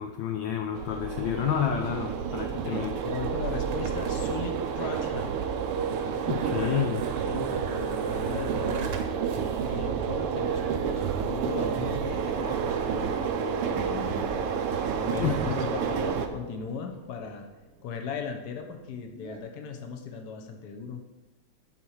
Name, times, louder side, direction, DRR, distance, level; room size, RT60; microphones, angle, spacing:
voice 1, 0.0-3.0 6.3-7.0 15.2-15.6, left 9 dB, 75° left, 4 dB, 1.2 m, -29 dB
sound 1, 0.7-16.3, right 7 dB, 90° right, 1.7 m, -30 dB
sound 2, 2.3-19.4, right 4 dB, 70° right, 1.7 m, -46 dB
voice 2, 2.5-5.4 6.6-6.7 7.2-8.9 9.7-13.0 13.7-14.5 15.0-15.4 15.7-17.5 17.8-21.0, left 5 dB, 55° left, 5 dB, 1.3 m, -37 dB
10.0 x 4.8 x 5.6 m, 1.1 s
omnidirectional pair, 2.4 m